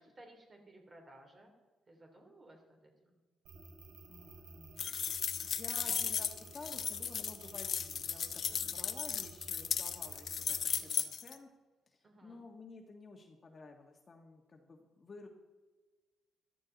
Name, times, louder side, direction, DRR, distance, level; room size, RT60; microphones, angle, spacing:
voice 1, 0.0-1.5 1.9-3.2 8.5-8.9 12.0-12.4, right 1 dB, 35° right, 1 dB, 3.4 m, -58 dB
sound 1, 3.5-10.9, right 4 dB, 90° right, 2.4 m, -54 dB
voice 2, 4.1-4.9 5.4-11.5 11.9-15.3, left 3 dB, 35° left, 1 dB, 1.6 m, -52 dB
sound 2, 4.8-11.3, left 7 dB, 55° left, 0.9 m, -36 dB
14.0 x 13.5 x 4.1 m, 1.3 s
cardioid pair, 90°, 0 cm